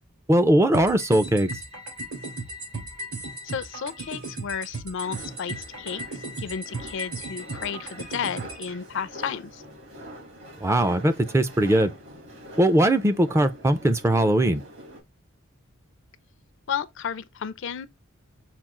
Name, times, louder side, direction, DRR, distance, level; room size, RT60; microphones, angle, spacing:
voice 1, 0.3-1.5 10.6-11.9 12.6-14.6, right 1 dB, 15° right, 0.4 m, -20 dB
sound 1, 0.7-8.7, right 2 dB, 80° right, 3.1 m, -36 dB
voice 2, 3.4-9.6 16.7-17.9, left 7 dB, 60° left, 0.4 m, -33 dB
sound 2, 5.0-15.0, equal, 60° right, 1.8 m, -44 dB
5.8 x 2.3 x 3.6 m
head